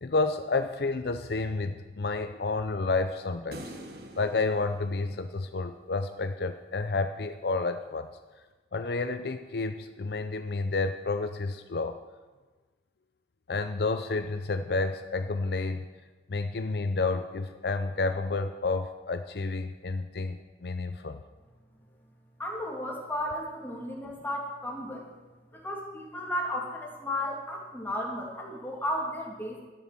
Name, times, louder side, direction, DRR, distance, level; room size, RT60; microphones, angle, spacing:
voice 1, 0.0-3.7 4.2-8.1 8.7-12.0 13.5-15.9 16.3-21.2, left 3 dB, 60° left, 8 dB, 0.6 m, -30 dB
sound 1, 3.5-5.9, right 1 dB, 60° right, 1.5 m, -46 dB
voice 2, 22.4-25.1 25.5-29.6, left 1 dB, 10° left, -2 dB, 2.6 m, -34 dB
12.5 x 10.5 x 7.6 m, 1.3 s
head